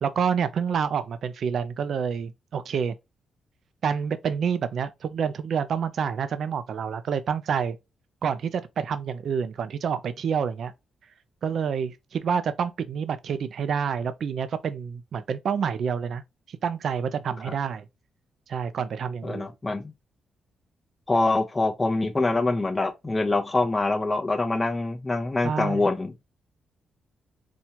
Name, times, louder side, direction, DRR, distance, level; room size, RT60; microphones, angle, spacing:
voice 1, 0.0-2.9 3.8-7.8 8.2-10.7 11.4-16.2 16.5-17.8 18.5-19.5 25.4-25.8, right 7 dB, 60° right, 0.4 m, -28 dB
voice 2, 19.2-19.9 21.1-26.2, left 2 dB, 20° left, 0.6 m, -25 dB
4.3 x 2.3 x 2.9 m
cardioid pair, 115°, 0 cm